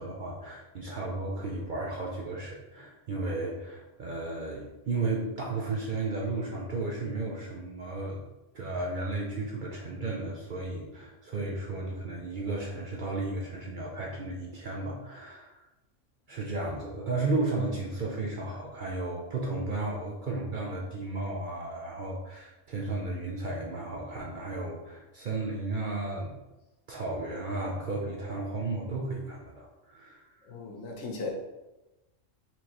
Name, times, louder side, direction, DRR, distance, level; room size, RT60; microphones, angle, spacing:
voice 1, 0.0-8.2 8.5-15.5 16.3-26.3 26.9-30.2, right 2 dB, 55° right, -2 dB, 0.6 m, -34 dB
voice 2, 30.5-31.3, left 3 dB, 80° left, 1 dB, 1.2 m, -37 dB
4.3 x 3.1 x 2.8 m, 1.0 s
omnidirectional pair, 1.3 m